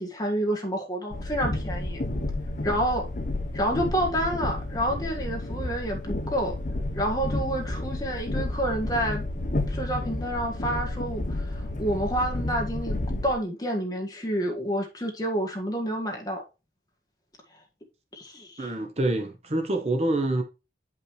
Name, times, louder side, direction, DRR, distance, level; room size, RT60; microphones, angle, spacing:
voice 1, 0.0-2.0 2.6-3.1 3.5-6.5 7.0-9.2 9.7-16.4 18.1-18.7, equal, 20° left, 1.7 m, -29 dB
Train, 1.1-13.3, left 1 dB, 45° left, 0.9 m, -31 dB
voice 2, 18.6-20.4, right 2 dB, 35° right, 0.8 m, -26 dB
8.8 x 5.4 x 3.2 m
head